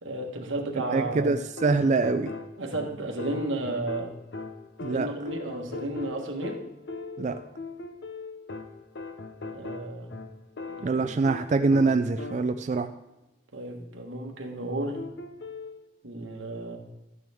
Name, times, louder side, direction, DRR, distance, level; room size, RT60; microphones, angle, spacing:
voice 1, 0.0-1.4 2.6-4.1 4.9-6.6 9.5-10.1 10.7-11.0 13.5-15.1 16.0-16.8, right 2 dB, 85° right, 2 dB, 1.5 m, -33 dB
voice 2, 0.9-2.3 4.8-5.1 7.2-7.4 10.8-12.9, right 3 dB, 40° right, 8 dB, 0.3 m, -24 dB
sound 1, 1.1-12.7 15.0-15.8, left 3 dB, 60° left, 0.7 m, -40 dB
12.5 x 9.1 x 3.5 m, 0.93 s
head